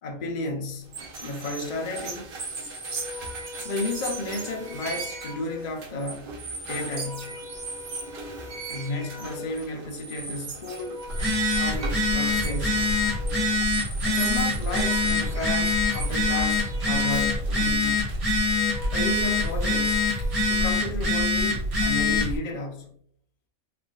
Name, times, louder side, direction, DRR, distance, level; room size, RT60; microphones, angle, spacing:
voice 1, 0.0-2.3 3.6-6.4 6.6-7.4 8.7-11.0 11.6-13.1 14.0-18.0 18.9-20.1 20.5-22.9, left 2 dB, 55° left, 0.4 m, -33 dB
sound 1, 0.8-20.1, right 3 dB, 55° right, 0.6 m, -38 dB
sound 2, 2.8-5.9 6.6-9.8 10.5-13.7 14.4-17.6 18.3-20.6, left 3 dB, 10° right, 1.4 m, -42 dB
Telephone, 11.1-22.4, left 2 dB, 75° right, 1.4 m, -24 dB
3.3 x 2.5 x 2.3 m
omnidirectional pair, 1.5 m